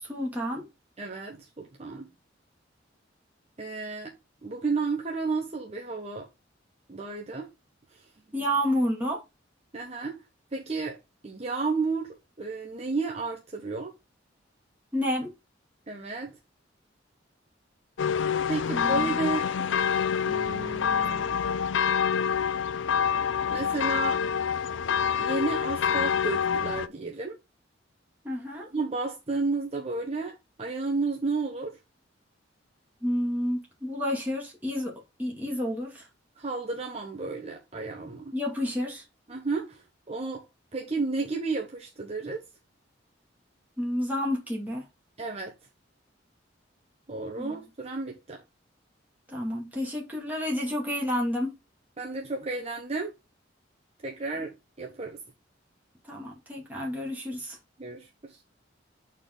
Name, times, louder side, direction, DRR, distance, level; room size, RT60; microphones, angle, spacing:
voice 1, 0.0-0.7 8.3-9.2 14.9-15.3 18.7-19.2 28.2-28.7 33.0-34.9 35.2-36.1 38.3-39.0 43.8-44.9 47.4-47.6 49.3-51.5 54.3-54.4 56.1-57.6, equal, 10° right, 2.2 m, -30 dB
voice 2, 1.0-2.1 3.6-4.1 4.4-6.3 6.9-7.5 7.9-8.1 9.7-10.2 10.5-11.0 11.2-13.9 15.9-16.3 18.5-19.5 20.2-21.4 23.5-24.2 25.2-27.4 28.7-31.8 36.4-38.3 39.3-40.5 40.7-42.5 45.2-45.5 47.1-48.4 52.0-53.1 54.0-54.5 54.8-55.2 57.8-58.4, right 3 dB, 35° right, 0.9 m, -32 dB
sound 1, 18.0-26.9, left 7 dB, 75° left, 0.4 m, -27 dB
6.8 x 4.4 x 3.8 m
head